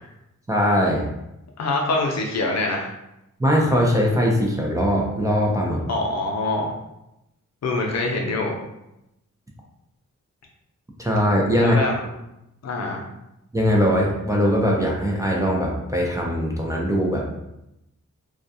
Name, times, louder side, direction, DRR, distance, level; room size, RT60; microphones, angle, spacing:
voice 1, 0.5-1.1 3.4-5.8 11.0-11.8 13.5-17.3, equal, 10° right, -2 dB, 0.4 m, -21 dB
voice 2, 1.6-2.9 5.9-6.7 7.6-8.6 11.6-11.9 12.6-13.0, left 2 dB, 60° left, 0 dB, 0.5 m, -24 dB
2.3 x 2.2 x 2.6 m, 0.87 s
wide cardioid pair, 95°, 30 cm